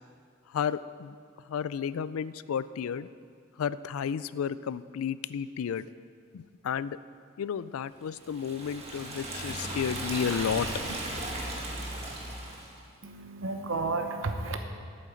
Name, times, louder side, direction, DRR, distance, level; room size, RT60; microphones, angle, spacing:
voice 1, 0.5-1.2 1.5-3.1 3.6-5.9 6.3-7.0 7.4-11.0, left 7 dB, 80° left, 16 dB, 0.3 m, -32 dB
Liquid, 8.2-12.8, right 1 dB, 30° right, 1.4 m, -36 dB
voice 2, 13.0-14.7, right 3 dB, 65° right, 6 dB, 0.9 m, -32 dB
8.6 x 8.2 x 7.1 m, 2.1 s
head